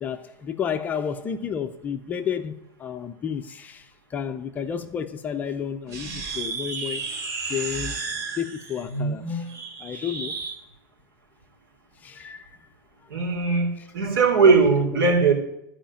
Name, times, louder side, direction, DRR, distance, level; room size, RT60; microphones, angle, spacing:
voice 1, 0.0-7.1 7.5-8.0 8.4-9.5 9.8-10.4 12.0-12.5 13.8-13.9 14.4-14.5 15.1-15.2, left 8 dB, 15° left, 0.5 m, -31 dB
sound 1, 5.9-10.6, right 3 dB, 25° right, 1.9 m, -32 dB
voice 2, 13.1-15.3, right 4 dB, 85° right, 3.3 m, -19 dB
11.5 x 5.0 x 8.7 m
supercardioid pair, 165°, 11 cm